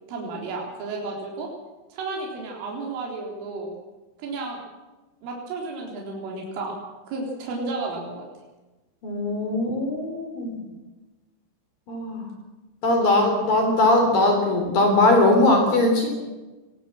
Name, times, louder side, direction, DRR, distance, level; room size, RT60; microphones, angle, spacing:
voice 1, 0.1-1.5 1.9-3.7 4.2-4.6 5.2-6.8 7.1-8.3 13.0-13.3, right 3 dB, 75° right, -1 dB, 6.3 m, -32 dB
voice 2, 9.0-10.6 11.9-12.3 12.8-16.1, left 2 dB, 50° left, 3 dB, 4.8 m, -20 dB
22.0 x 19.5 x 7.6 m, 1.1 s
omnidirectional pair, 5.8 m